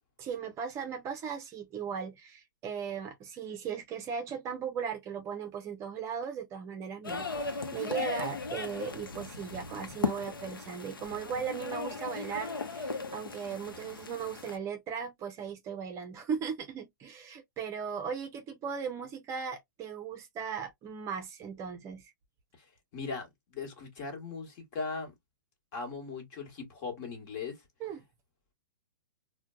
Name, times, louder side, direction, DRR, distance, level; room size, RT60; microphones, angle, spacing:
voice 1, 0.2-22.1 27.8-28.0, right 7 dB, 25° right, 0.6 m, -37 dB
sound 1, 7.0-14.6, left 4 dB, 90° left, 0.8 m, -37 dB
voice 2, 22.9-25.1 25.7-27.6, left 4 dB, 40° left, 1.3 m, -39 dB
4.3 x 2.2 x 2.2 m
hypercardioid pair, 125°, 11 cm